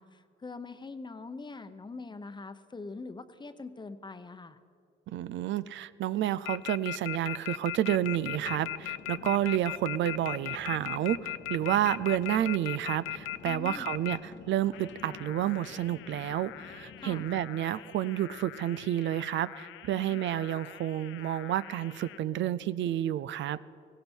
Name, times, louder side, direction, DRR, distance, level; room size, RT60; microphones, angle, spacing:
voice 1, 0.0-4.6 13.4-13.9 17.0-17.2 19.9-20.3, left 3 dB, 20° left, 10 dB, 0.8 m, -43 dB
voice 2, 5.1-23.6, right 12 dB, 70° right, 16 dB, 0.5 m, -30 dB
sound 1, 6.5-14.2 14.7-22.2, left 13 dB, 85° left, 0.5 m, -39 dB
sound 2, 7.9-17.5, left 7 dB, 65° left, 1.0 m, -50 dB
17.5 x 16.5 x 4.4 m, 2.3 s
cardioid pair, 90°, 20 cm